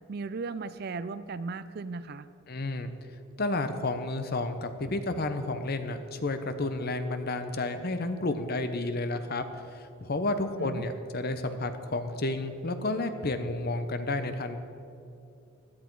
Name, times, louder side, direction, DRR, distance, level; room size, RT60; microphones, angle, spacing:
voice 1, 0.1-2.3 10.6-10.8, right 4 dB, 45° right, 14 dB, 0.4 m, -36 dB
voice 2, 2.5-2.9 3.4-9.4 9.7-14.6, left 2 dB, 45° left, 9 dB, 0.8 m, -31 dB
16.0 x 11.0 x 4.7 m, 2.8 s
head